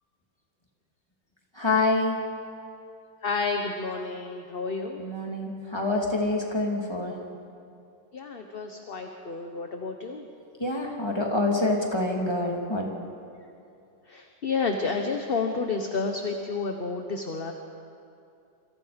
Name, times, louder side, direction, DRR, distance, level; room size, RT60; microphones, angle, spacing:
voice 1, 1.6-2.2 5.0-7.1 10.6-12.9, left 2 dB, 15° left, -1 dB, 3.1 m, -26 dB
voice 2, 3.2-5.0 8.1-10.3 14.1-17.5, left 4 dB, 35° left, 4 dB, 1.3 m, -30 dB
28.0 x 25.0 x 5.3 m, 2.6 s
omnidirectional pair, 1.9 m